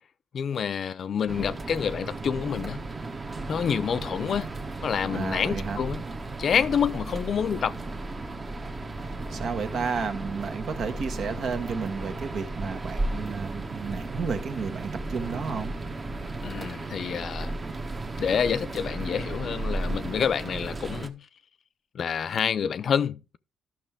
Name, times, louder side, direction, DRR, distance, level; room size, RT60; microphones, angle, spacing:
voice 1, 0.3-2.8 3.5-4.5 4.8-6.0 6.4-7.8 16.4-17.5 18.2-21.2 21.9-23.4, left 7 dB, 55° left, 0.5 m, -28 dB
sound 1, 1.3-21.1, right 2 dB, 30° right, 1.1 m, -34 dB
voice 2, 5.1-5.8 9.3-15.8, right 5 dB, 65° right, 1.3 m, -32 dB
12.0 x 6.0 x 3.5 m
cardioid pair, 90°, 0 cm